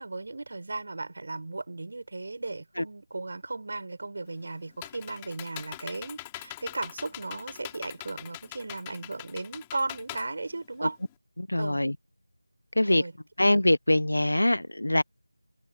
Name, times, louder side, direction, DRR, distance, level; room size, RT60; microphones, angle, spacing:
voice 1, 0.0-11.0 11.5-11.8 12.8-13.1, right 3 dB, 45° right, 6.2 m, -36 dB
Computer keyboard, 4.3-11.1, left 17 dB, 10° left, 5.0 m, -43 dB
voice 2, 11.4-11.9 12.8-13.0 13.4-15.0, left 1 dB, 75° left, 1.2 m, -23 dB
open air
figure-of-eight pair, 170°, 0 cm